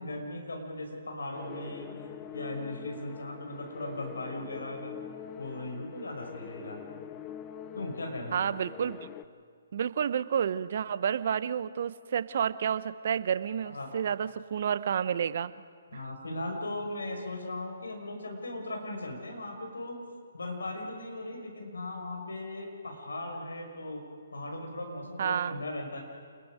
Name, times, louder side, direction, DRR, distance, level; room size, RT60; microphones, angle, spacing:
voice 1, 0.0-2.0 2.3-5.0 5.4-6.8 7.7-8.5 13.6-13.9 15.9-20.0 20.3-24.0 24.3-26.0, left 1 dB, 80° left, 2 dB, 5.6 m, -38 dB
sound 1, 1.3-9.2, left 8 dB, 20° left, 0.8 m, -44 dB
voice 2, 8.3-9.0 9.7-15.5 25.2-25.6, right 8 dB, 55° right, 15 dB, 0.8 m, -30 dB
29.0 x 21.5 x 5.0 m, 2.2 s
figure-of-eight pair, 140°, 0 cm